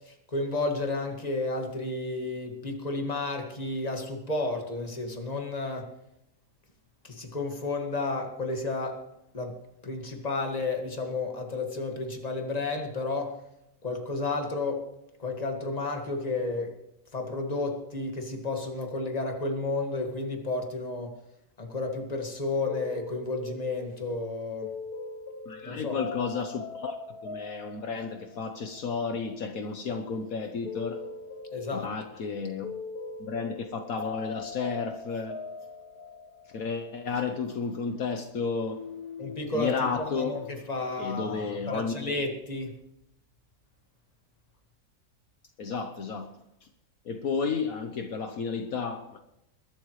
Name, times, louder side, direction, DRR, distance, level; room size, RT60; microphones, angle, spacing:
voice 1, 0.1-5.9 7.0-9.0 9.3-9.6 9.8-13.4 13.8-14.9 15.2-16.7 17.1-21.1 21.6-24.7 25.6-26.0 31.5-31.9 39.2-42.7, left 3 dB, 25° left, 2.0 m, -32 dB
sound 1, 22.7-38.3 38.6-40.5, left 5 dB, 85° left, 1.7 m, -42 dB
voice 2, 25.5-27.0 27.2-31.0 31.7-32.7 33.2-35.4 36.5-38.8 39.5-40.4 41.0-42.1 45.6-46.3 47.0-49.2, left 5 dB, 65° left, 1.4 m, -32 dB
21.5 x 12.5 x 3.2 m
omnidirectional pair, 1.6 m